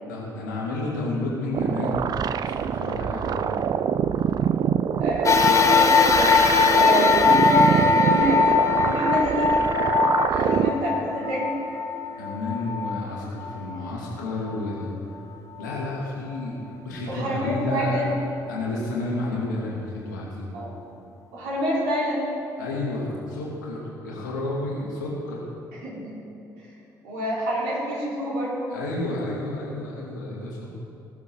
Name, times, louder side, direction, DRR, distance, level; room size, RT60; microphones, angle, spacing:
voice 1, 0.0-2.1 2.4-3.7 8.1-8.2 10.0-10.8 12.2-14.9 15.6-16.6 16.8-18.0 18.5-20.5 22.6-25.4 28.7-30.7, left 2 dB, 75° left, -4 dB, 2.5 m, -31 dB
sound 1, 1.5-10.7, right 8 dB, 40° right, 0.5 m, -25 dB
voice 2, 5.0-9.7 10.4-11.5 17.1-18.1 20.5-20.9 21.3-22.3 25.7-26.2 27.0-28.7, equal, 65° right, -6 dB, 3.8 m, -28 dB
sound 2, 5.2-13.9 14.5-14.6 15.7-15.8, left 5 dB, 30° left, 1.3 m, -21 dB
18.0 x 7.1 x 6.1 m, 2.7 s
figure-of-eight pair, 45°, 10 cm